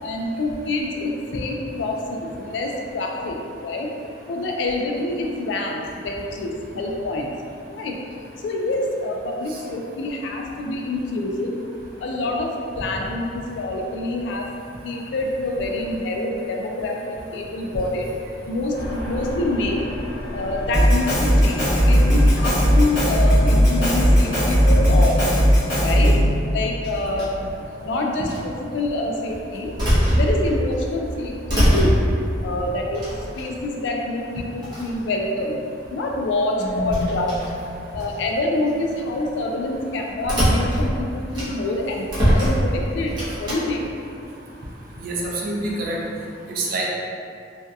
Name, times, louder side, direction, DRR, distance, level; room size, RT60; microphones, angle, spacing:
voice 1, 0.0-3.4 3.6-3.9 4.3-7.3 7.8-8.0 8.4-11.5 12.0-14.5 14.8-18.1 18.5-19.9 20.3-25.3 25.8-26.2 26.5-29.7 30.1-32.0 32.4-33.0 33.4-35.6 35.9-37.3 37.9-43.9, left 2 dB, 65° left, 1 dB, 0.3 m, -26 dB
sound 1, 18.7-24.9, equal, 85° left, 0.7 m, -32 dB
Drum kit, 20.7-26.3, equal, 40° left, 1.2 m, -17 dB
sound 2, 24.7-25.5 26.8-27.5 28.3-28.4 29.3-30.8 31.1-32.3 32.9-33.7 34.3-34.4 34.6-35.0 36.6-38.1 38.7-38.9 40.2-41.8 42.1-43.6, equal, 25° right, 0.7 m, -23 dB
voice 2, 36.6-37.1 45.0-46.0 46.5-46.9, right 1 dB, 50° right, -3 dB, 0.4 m, -26 dB
2.6 x 2.2 x 2.3 m, 2.4 s
head